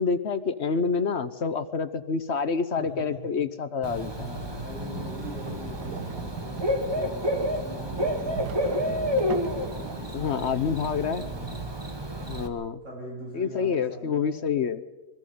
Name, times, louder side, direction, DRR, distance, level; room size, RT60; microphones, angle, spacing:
voice 1, 0.0-4.1 10.1-11.3 12.2-12.8 13.3-14.8, left 5 dB, 50° left, 12 dB, 1.0 m, -27 dB
voice 2, 2.8-3.3 4.1-10.7 11.0-11.7 12.8-14.6, right 1 dB, 50° right, -3 dB, 8.1 m, -42 dB
Bird / Cricket, 3.8-12.5, equal, 15° right, 1.4 m, -30 dB
sound 1, 4.9-10.0, right 7 dB, 90° right, 1.6 m, -40 dB
22.5 x 13.5 x 9.4 m, 1.1 s
omnidirectional pair, 1.7 m